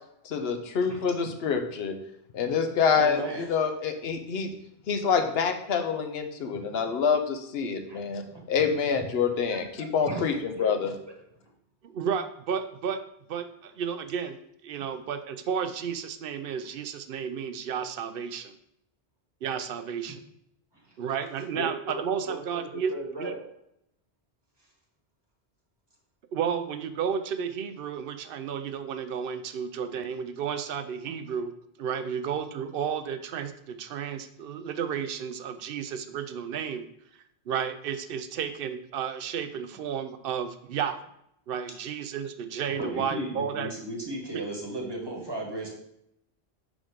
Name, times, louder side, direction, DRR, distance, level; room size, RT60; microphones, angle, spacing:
voice 1, 0.2-1.9 2.3-4.5 4.9-8.2 8.5-10.9, left 6 dB, 70° left, 6 dB, 0.9 m, -26 dB
voice 2, 3.0-3.5 6.5-6.7 7.9-8.0 8.3-8.7 9.5-9.6 10.1-10.2 10.6-10.7 21.5-23.4 42.8-45.8, right 1 dB, 25° right, -1 dB, 1.2 m, -36 dB
voice 3, 11.8-13.0 13.3-14.4 14.6-18.6 19.4-20.2 21.0-22.9 23.2-23.3 26.3-31.5 31.8-36.8 37.5-41.0 41.5-43.7 44.3-44.4, right 7 dB, 65° right, 9 dB, 0.7 m, -32 dB
5.0 x 3.8 x 4.9 m, 0.77 s
omnidirectional pair, 1.1 m